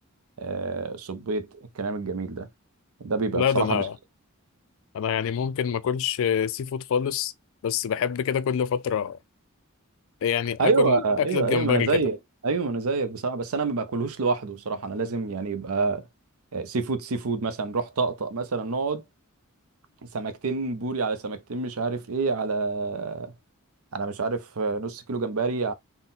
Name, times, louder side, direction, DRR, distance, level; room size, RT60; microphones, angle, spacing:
voice 1, 0.4-1.5 1.7-2.5 3.0-3.8 10.6-12.2 12.4-16.0 16.5-19.0 20.1-23.3 23.9-25.7, right 4 dB, 80° right, 0.6 m, -27 dB
voice 2, 3.3-4.0 4.9-7.3 7.6-9.2 10.2-12.0, left 8 dB, 65° left, 0.3 m, -26 dB
3.9 x 2.1 x 4.0 m
head